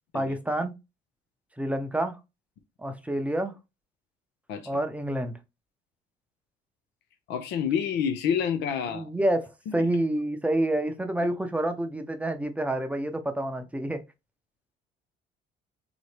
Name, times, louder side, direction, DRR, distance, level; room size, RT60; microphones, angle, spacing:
voice 1, 0.1-0.8 1.6-2.2 2.8-3.6 4.7-5.4 8.9-14.0, right 1 dB, 10° right, 0.6 m, -28 dB
voice 2, 7.3-9.1 9.7-9.8, left 7 dB, 80° left, 0.7 m, -28 dB
4.0 x 3.0 x 3.3 m
cardioid pair, 110°, 17 cm